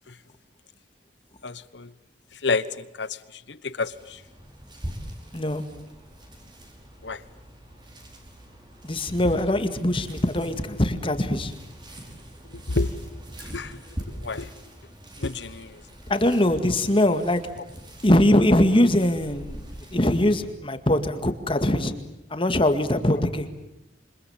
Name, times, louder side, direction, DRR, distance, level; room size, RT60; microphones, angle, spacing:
voice 1, 1.4-1.9 2.3-4.2 7.0-7.2 9.2-9.4 12.5-13.1 13.4-13.8 14.1-14.5 15.2-15.8, left 3 dB, 80° left, 16 dB, 1.2 m, -30 dB
sound 1, 3.8-20.5, equal, 25° right, 5.2 m, -43 dB
voice 2, 5.3-5.7 8.8-11.5 16.1-17.4 18.0-19.6 19.9-21.9 22.3-23.5, left 1 dB, 30° left, 9 dB, 2.1 m, -22 dB
27.5 x 26.0 x 7.3 m, 0.96 s
head